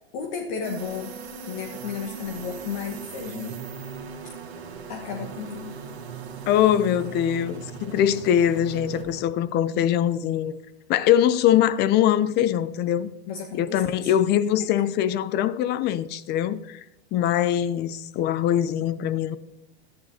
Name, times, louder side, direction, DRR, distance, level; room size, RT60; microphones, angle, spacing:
voice 1, 0.1-1.1 1.4-3.6 4.9-5.7 13.3-14.1, left 6 dB, 50° left, 1.5 m, -33 dB
sound 1, 0.6-9.2, right 6 dB, 90° right, 1.7 m, -39 dB
voice 2, 6.5-10.6 10.9-13.1 13.5-16.8 17.1-19.4, left 10 dB, 35° left, 0.6 m, -22 dB
13.5 x 9.6 x 2.8 m
hypercardioid pair, 115°, 31 cm